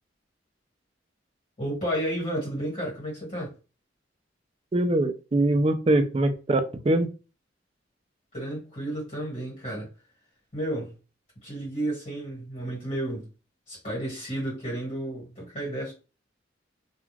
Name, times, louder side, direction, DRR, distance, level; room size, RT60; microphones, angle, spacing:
voice 1, 1.6-3.5 8.3-9.9 10.5-10.9 11.4-13.3 13.7-15.9, right 1 dB, 40° left, 1.5 m, -32 dB
voice 2, 4.7-7.1, right 1 dB, 30° right, 0.4 m, -23 dB
2.3 x 2.3 x 3.2 m
head